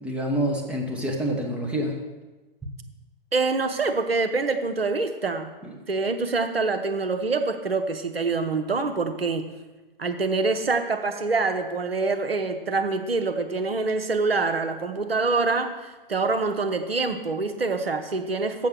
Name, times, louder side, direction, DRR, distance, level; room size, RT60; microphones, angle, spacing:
voice 1, 0.0-1.9 2.6-2.7 5.6-5.7, right 1 dB, 5° right, -1 dB, 1.3 m, -27 dB
voice 2, 3.3-5.5 5.9-9.5 10.0-18.7, right 3 dB, 90° right, 7 dB, 1.0 m, -25 dB
7.5 x 6.9 x 6.3 m, 1.2 s
figure-of-eight pair, 120°, 29 cm